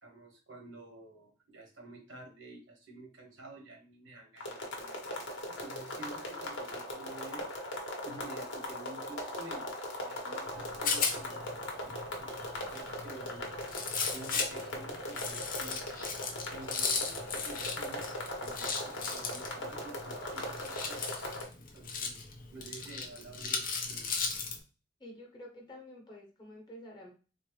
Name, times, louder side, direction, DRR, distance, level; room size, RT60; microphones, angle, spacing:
voice 1, 0.0-5.0 5.6-7.5 8.0-9.8 10.0-13.5 14.0-15.8 16.5-18.1 18.4-21.0 21.6-22.3 22.5-24.1, right 2 dB, 80° right, 1 dB, 1.2 m, -50 dB
sound 1, 4.4-21.4, left 1 dB, 75° left, 1.0 m, -40 dB
Rattle, 10.5-24.6, left 5 dB, 45° left, 0.6 m, -37 dB
voice 2, 25.0-27.1, left 1 dB, 25° left, -1 dB, 1.1 m, -49 dB
3.8 x 2.1 x 3.1 m, 0.34 s
head